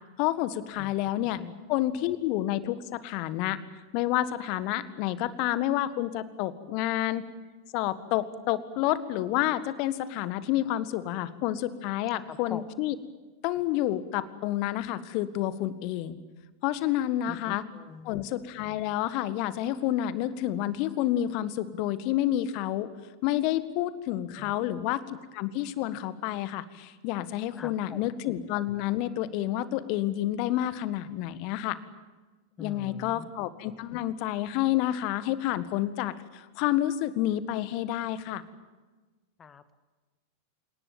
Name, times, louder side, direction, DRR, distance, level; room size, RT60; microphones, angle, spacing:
voice 1, 0.2-1.4 1.7-3.6 3.9-7.2 7.7-12.9 13.4-16.2 16.6-17.6 18.0-22.9 23.2-25.0 25.3-31.8 32.6-38.4, left 13 dB, 45° left, 15 dB, 1.7 m, -29 dB
voice 2, 1.2-1.5 12.3-12.6 17.3-18.1 24.4-24.8 27.5-28.1 32.6-33.3 39.4-39.8, left 6 dB, 20° left, 13 dB, 1.8 m, -44 dB
28.5 x 18.5 x 8.9 m, 1.3 s
figure-of-eight pair, 90°, 0 cm